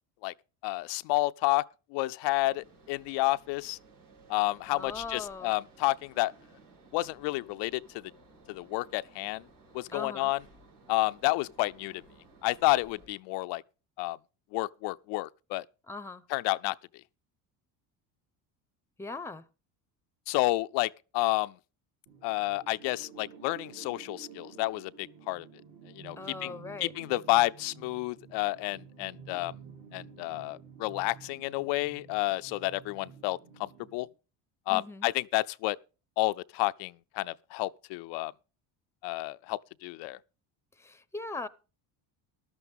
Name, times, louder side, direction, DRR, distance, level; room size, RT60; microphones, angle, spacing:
voice 1, 0.6-3.8 4.3-6.3 6.9-8.1 8.5-9.4 9.7-10.4 10.9-12.0 12.4-13.6 14.0-14.2 14.5-15.6 16.3-16.8 20.3-21.5 22.2-25.5 25.9-26.5 26.8-29.5 29.9-34.1 34.7-35.8 36.2-38.3 39.0-40.2, left 20 dB, 75° left, 0.6 m, -30 dB
sound 1, 2.4-13.1, right 3 dB, 90° right, 5.5 m, -58 dB
voice 2, 4.7-5.6 9.9-10.3 15.9-16.2 19.0-19.5 26.2-26.9 34.7-35.1 40.8-41.5, left 3 dB, 5° left, 0.7 m, -40 dB
sound 2, 22.1-34.1, right 6 dB, 55° right, 4.1 m, -51 dB
14.0 x 12.0 x 3.5 m
cardioid pair, 105°, 42 cm